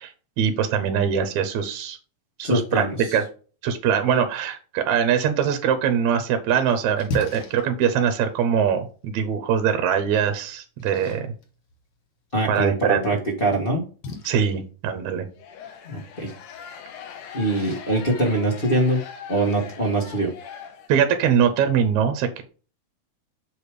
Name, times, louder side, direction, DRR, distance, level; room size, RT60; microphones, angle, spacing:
voice 1, 0.0-2.0 2.4-3.2 3.6-11.3 12.5-13.0 14.2-15.3 20.9-22.4, right 8 dB, 70° right, 8 dB, 2.1 m, -22 dB
voice 2, 2.4-3.1 12.3-13.8 15.8-16.3 17.3-20.3, right 1 dB, 30° left, -2 dB, 1.0 m, -23 dB
Splash splatter, 6.0-19.0, left 3 dB, 55° left, 2.0 m, -41 dB
sound 1, 15.4-21.3, left 8 dB, 80° left, 2.5 m, -41 dB
6.8 x 4.9 x 5.0 m, 0.37 s
omnidirectional pair, 3.6 m